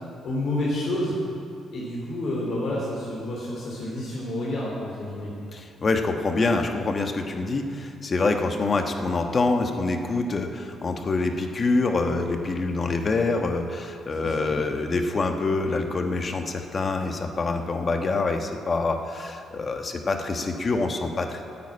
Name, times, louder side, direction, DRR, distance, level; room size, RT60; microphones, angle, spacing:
voice 1, 0.2-1.2 1.7-5.3 14.2-14.5, left 1 dB, 60° left, -6 dB, 3.2 m, -29 dB
voice 2, 5.5-21.4, left 3 dB, 40° left, 5 dB, 1.2 m, -26 dB
9.8 x 9.0 x 8.7 m, 2.5 s
cardioid pair, 90°, 0 cm